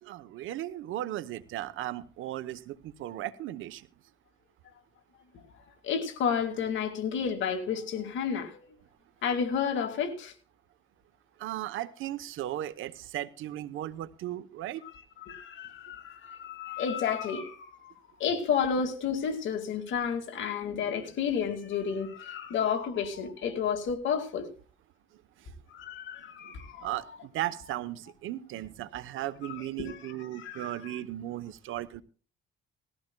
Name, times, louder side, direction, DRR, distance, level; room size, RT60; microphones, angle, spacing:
voice 1, 0.0-3.9 11.4-14.8 26.4-32.0, right 13 dB, 85° right, 0.9 m, -36 dB
voice 2, 5.8-8.7 9.2-10.3 15.2-17.9 18.2-24.5 25.7-27.0 29.8-30.7, left 7 dB, 75° left, 2.2 m, -31 dB
18.5 x 14.5 x 2.2 m
cardioid pair, 90°, 20 cm